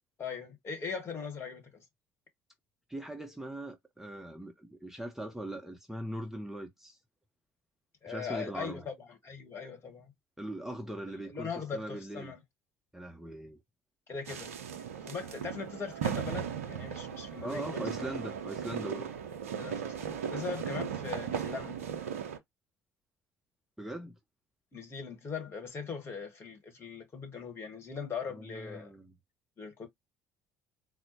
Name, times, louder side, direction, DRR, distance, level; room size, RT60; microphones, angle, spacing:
voice 1, 0.2-1.8 8.0-10.1 11.1-12.4 14.1-14.6 15.0-17.8 19.6-21.8 24.7-28.9 29.6-29.9, left 5 dB, 35° left, 1.5 m, -40 dB
voice 2, 2.9-7.0 8.1-8.9 10.4-12.3 12.9-13.6 17.4-19.1 23.8-24.1 28.3-29.2, right 1 dB, 5° right, 0.8 m, -40 dB
sound 1, 14.2-22.4, right 8 dB, 80° right, 0.5 m, -37 dB
4.1 x 2.0 x 2.8 m
figure-of-eight pair, 60°, 7 cm